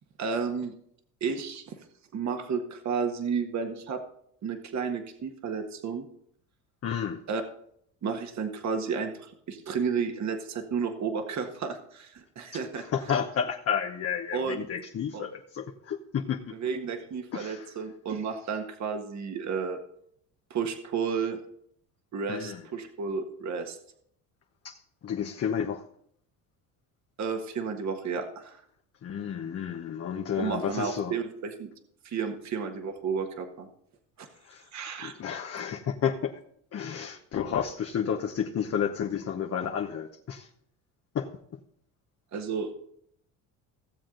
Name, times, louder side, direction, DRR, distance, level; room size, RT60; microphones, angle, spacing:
voice 1, 0.2-0.7 1.2-1.8 2.1-4.0 4.4-6.1 7.3-7.4 8.0-12.8 14.3-14.6 15.1-15.2 16.6-19.8 20.5-21.4 22.1-23.8 27.2-28.6 30.4-31.7 32.0-33.7 34.2-34.3 34.7-35.1 42.3-42.7, right 5 dB, 45° right, 5 dB, 1.6 m, -32 dB
voice 2, 6.8-7.2 12.5-16.5 17.3-17.7 22.3-22.6 24.6-25.8 29.0-31.1 34.4-34.7 35.0-36.4 36.7-40.5 41.1-41.3, left 8 dB, 40° left, 2 dB, 1.0 m, -31 dB
16.5 x 7.4 x 3.9 m, 0.70 s
supercardioid pair, 90°, 38 cm